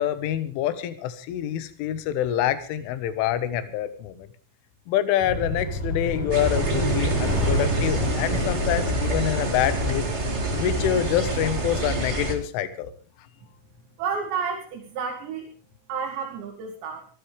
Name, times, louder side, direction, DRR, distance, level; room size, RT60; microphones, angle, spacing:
voice 1, 0.0-4.3 4.9-10.1 10.5-12.9, left 11 dB, 75° left, 12 dB, 3.7 m, -26 dB
sound 1, 5.2-10.4, equal, 30° left, 6.2 m, -28 dB
sound 2, 6.3-12.3, right 1 dB, 85° right, 0.6 m, -27 dB
voice 2, 14.0-15.5 15.9-17.1, right 6 dB, 65° right, 1 dB, 4.3 m, -31 dB
25.0 x 13.5 x 3.4 m, 0.38 s
omnidirectional pair, 5.9 m